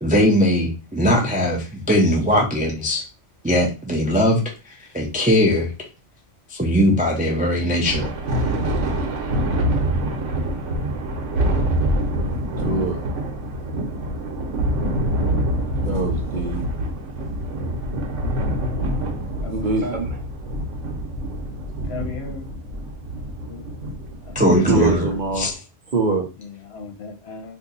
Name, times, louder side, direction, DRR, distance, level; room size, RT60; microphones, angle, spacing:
voice 1, 0.0-3.0 3.4-4.4 4.9-5.7 6.5-8.1 24.3-25.1 25.4-25.5, equal, 15° right, -1 dB, 0.3 m, -19 dB
Thunder, 7.8-25.5, right 1 dB, 90° right, 1.2 m, -25 dB
voice 2, 12.6-13.0 15.8-16.6 19.5-20.2 24.6-25.5 25.9-26.3, right 3 dB, 50° right, 2 dB, 0.7 m, -23 dB
voice 3, 19.4-19.8 21.8-22.4 23.5-23.7 24.2-24.7 26.4-27.6, left 5 dB, 65° left, 2 dB, 1.0 m, -36 dB
2.6 x 2.6 x 3.9 m, 0.31 s
omnidirectional pair, 1.2 m